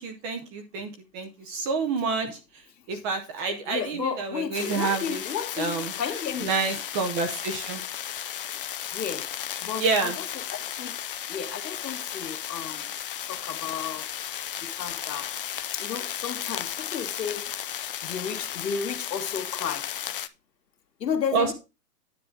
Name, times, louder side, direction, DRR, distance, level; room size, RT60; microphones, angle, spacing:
voice 1, 0.0-2.4 2.9-5.2 5.6-5.9 6.4-7.8 9.8-10.2 21.3-21.5, right 4 dB, 15° right, 0.6 m, -28 dB
voice 2, 3.7-6.5 8.5-8.6 8.9-9.3 9.6-10.4 10.8-10.9 11.3-12.9 13.2-15.3 15.7-17.5 18.0-19.9 21.0-21.5, left 7 dB, 80° left, 2.0 m, -33 dB
sound 1, 4.5-20.3, left 10 dB, 35° left, 0.4 m, -34 dB
9.7 x 7.1 x 3.8 m
hypercardioid pair, 140°, 49 cm